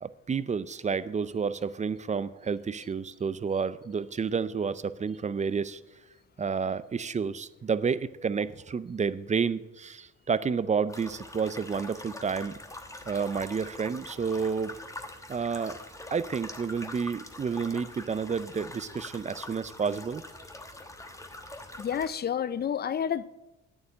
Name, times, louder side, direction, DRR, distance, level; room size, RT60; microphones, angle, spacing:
voice 1, 0.0-5.8 6.4-12.6 13.1-14.8 15.3-15.8 16.1-20.2, right 6 dB, 25° right, 0.5 m, -30 dB
sound 1, 10.9-22.1, left 1 dB, 10° left, 1.1 m, -44 dB
voice 2, 21.8-23.3, left 8 dB, 35° left, 0.5 m, -29 dB
8.8 x 7.0 x 8.4 m
cardioid pair, 90°, 30 cm